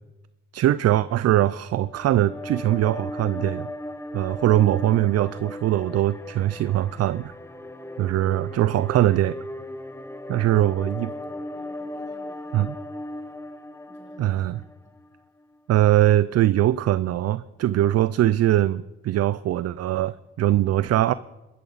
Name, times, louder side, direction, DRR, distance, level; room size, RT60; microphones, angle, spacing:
voice 1, 0.5-3.7 4.1-7.3 8.0-9.4 10.3-11.1 12.5-12.7 14.2-14.6 15.7-21.1, right 13 dB, 55° right, 17 dB, 0.4 m, -21 dB
sound 1, 1.7-15.0, left 1 dB, 10° left, 1.0 m, -37 dB
voice 2, 10.5-13.4 13.9-15.0, right 2 dB, 25° right, -2 dB, 7.5 m, -57 dB
23.0 x 13.5 x 4.1 m, 1.1 s
cardioid pair, 90°, 30 cm